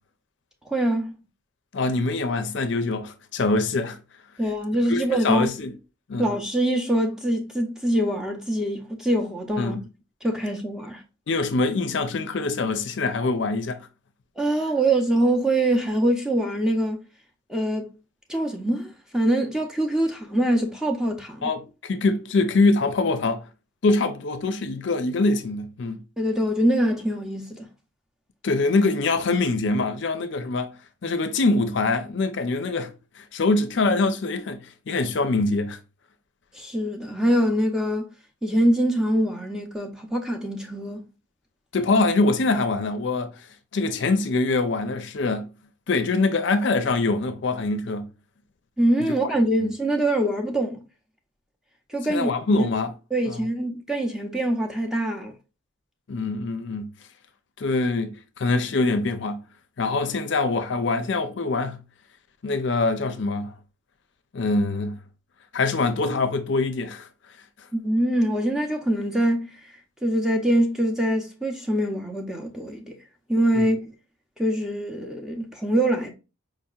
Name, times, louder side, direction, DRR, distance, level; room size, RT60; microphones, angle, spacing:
voice 1, 0.7-1.2 4.4-5.5 6.2-9.8 10.2-11.0 14.4-17.0 17.5-17.9 18.3-21.5 26.2-27.7 36.5-38.1 38.4-41.0 48.8-50.8 51.9-52.7 53.1-55.3 67.7-69.7 70.0-73.0 73.3-73.8 74.4-76.1, right 1 dB, 5° right, 0.6 m, -24 dB
voice 2, 1.7-4.0 4.9-5.7 6.1-6.3 9.6-9.8 11.3-13.9 21.4-23.5 23.8-26.0 28.4-30.7 31.0-35.8 41.7-43.3 43.7-45.5 45.9-48.1 49.0-49.1 49.6-49.7 52.1-52.9 53.3-53.4 56.1-56.9 57.6-59.4 59.8-61.8 62.4-63.5 64.3-65.0 65.5-67.1 73.6-73.7, left 3 dB, 60° left, 0.5 m, -24 dB
4.8 x 2.8 x 2.3 m
head